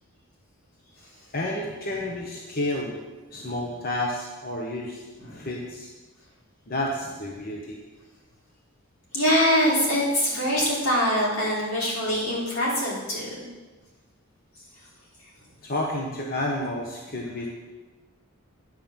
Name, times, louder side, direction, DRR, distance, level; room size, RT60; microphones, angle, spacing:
voice 1, 1.3-3.0 3.3-5.0 5.3-5.9 6.7-7.8 15.6-17.5, left 1 dB, 45° left, -1 dB, 1.0 m, -30 dB
voice 2, 9.1-13.3, equal, 80° left, -5 dB, 3.6 m, -24 dB
9.3 x 5.4 x 7.3 m, 1.3 s
head